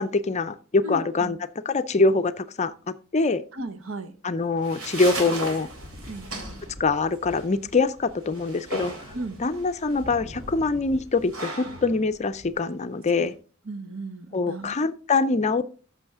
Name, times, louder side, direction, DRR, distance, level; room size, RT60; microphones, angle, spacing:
voice 1, 0.0-1.4 1.6-2.7 3.1-3.4 4.2-5.7 6.8-9.1 9.4-13.3 14.3-15.7, left 3 dB, 35° left, 0.5 m, -24 dB
voice 2, 0.8-1.4 3.5-4.1 6.1-6.3 9.1-9.4 13.2-13.3 13.7-14.7 15.2-15.3, right 1 dB, 70° right, 1.1 m, -35 dB
sound 1, 4.4-13.4, right 2 dB, 90° right, 3.8 m, -38 dB
sound 2, 5.4-11.4 11.6-12.5, equal, 25° right, 1.8 m, -46 dB
13.5 x 6.2 x 3.5 m
head